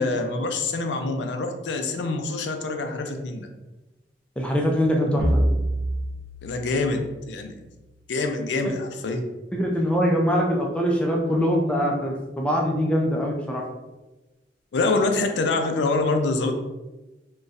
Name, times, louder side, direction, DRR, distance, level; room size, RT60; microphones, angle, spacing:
voice 1, 0.0-3.5 6.4-7.6 8.1-9.2 14.7-16.6, left 3 dB, 75° left, 5 dB, 0.4 m, -25 dB
voice 2, 4.4-5.4 8.6-8.7 9.5-13.6, equal, 5° left, 0 dB, 0.4 m, -23 dB
sound 1, 5.2-7.8, right 1 dB, 75° right, 0.6 m, -27 dB
3.9 x 2.2 x 2.5 m, 1.1 s
head